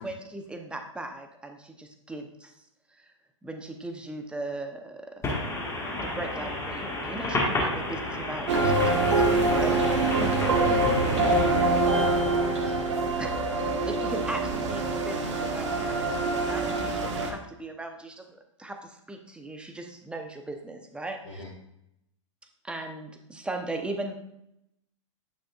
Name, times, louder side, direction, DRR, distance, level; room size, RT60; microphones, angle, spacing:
voice 1, 0.0-2.5 2.9-3.1 3.4-5.2 6.2-7.7 8.1-9.7 10.2-10.3 11.1-11.2 13.2-13.3 13.8-21.4 22.6-24.1, right 2 dB, 5° right, 4 dB, 0.8 m, -38 dB
voice 2, 5.2-11.5, left 2 dB, 15° left, -3 dB, 1.6 m, -31 dB
sound 1, 8.5-17.3, right 2 dB, 60° right, 1.4 m, -25 dB
voice 3, 10.2-12.7 13.6-13.8 21.2-21.5, left 3 dB, 60° left, -3 dB, 1.6 m, -39 dB
9.5 x 6.0 x 2.4 m, 0.80 s
figure-of-eight pair, 105°, 17 cm